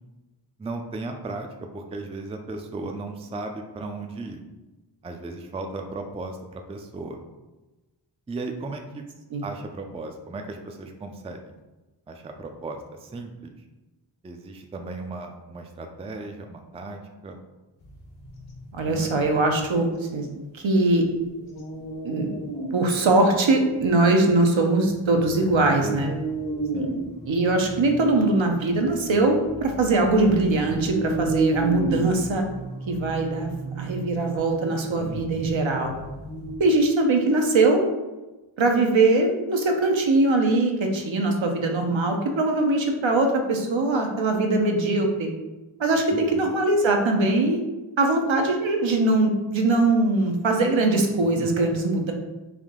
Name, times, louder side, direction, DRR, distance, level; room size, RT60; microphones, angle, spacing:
voice 1, 0.6-1.5 1.7-4.4 5.0-7.2 8.3-9.1 9.4-11.6 12.1-13.5 14.2-17.4 18.9-19.1 25.8-26.2 26.7-27.0 35.0-35.5 46.1-46.4 51.2-51.8, right 3 dB, 15° right, 4 dB, 0.3 m, -36 dB
sound 1, 17.8-19.6 21.4-22.8 23.1-23.2 23.8-24.2 24.8-36.6, right 2 dB, 75° left, 1.1 m, -33 dB
voice 2, 18.7-21.1 22.0-22.3 22.7-26.1 27.3-32.4 32.9-35.9 36.6-37.8 38.6-45.3 45.8-47.6 48.0-52.1, right 2 dB, 70° right, 3 dB, 0.7 m, -21 dB
3.6 x 2.6 x 3.6 m, 1.1 s
wide cardioid pair, 65°, 48 cm